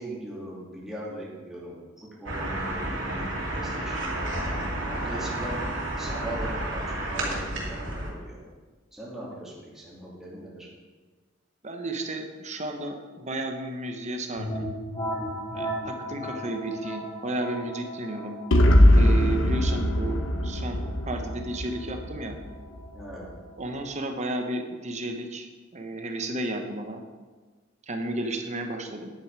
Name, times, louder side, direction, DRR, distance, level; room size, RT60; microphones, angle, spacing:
voice 1, 0.0-1.8 2.2-4.5 4.9-5.6 6.0-8.4 8.9-10.7 22.9-23.3, right 1 dB, ahead, -7 dB, 2.7 m, -39 dB
sound 1, 2.3-8.1, right 1 dB, 65° right, 2.8 m, -31 dB
voice 2, 11.6-14.7 15.5-18.4 18.9-22.4 23.6-27.0 27.9-29.1, right 1 dB, 35° right, 5 dB, 1.1 m, -33 dB
sound 2, 14.4-23.9, equal, 30° left, 3.8 m, -37 dB
sound 3, 18.5-22.4, left 1 dB, 75° left, 1.0 m, -20 dB
10.5 x 8.5 x 4.8 m, 1.4 s
head